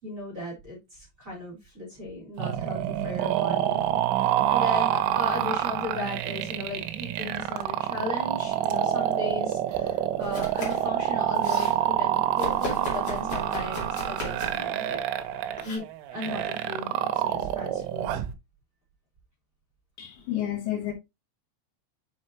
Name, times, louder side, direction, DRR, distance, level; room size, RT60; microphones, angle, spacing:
voice 1, 0.0-15.0 15.6-15.8 16.1-18.2, left 2 dB, 20° right, 3.2 m, -36 dB
sound 1, 2.4-18.3, right 11 dB, 90° right, 3.1 m, -27 dB
Domestic sounds home sounds, 10.2-10.9 11.2-11.8 12.4-14.7 15.6-15.8, left 1 dB, 40° left, 2.5 m, -36 dB
voice 2, 20.0-20.9, left 12 dB, 70° left, 3.1 m, -30 dB
7.6 x 5.4 x 2.9 m
omnidirectional pair, 5.6 m